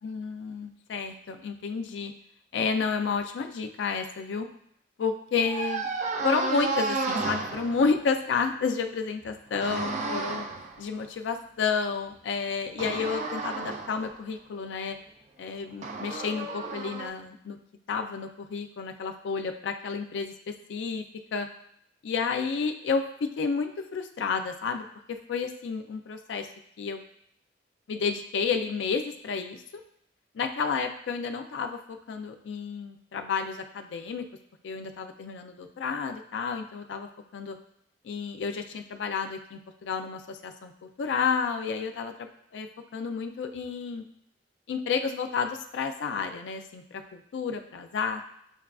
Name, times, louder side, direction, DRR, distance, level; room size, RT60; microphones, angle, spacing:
voice 1, 0.0-2.1 2.5-4.5 5.0-5.9 6.2-10.5 10.8-15.0 15.4-17.6 17.9-21.0 21.3-21.5 22.0-26.5 26.8-27.0 27.9-29.6 30.3-34.3 34.6-37.6 38.0-44.0 44.7-48.2, left 5 dB, 85° left, 6 dB, 0.4 m, -31 dB
sound 1, 5.4-8.0 9.5-10.9 12.8-14.2 15.8-17.1, right 3 dB, 40° right, 0.3 m, -32 dB
6.4 x 2.3 x 2.3 m, 0.71 s
head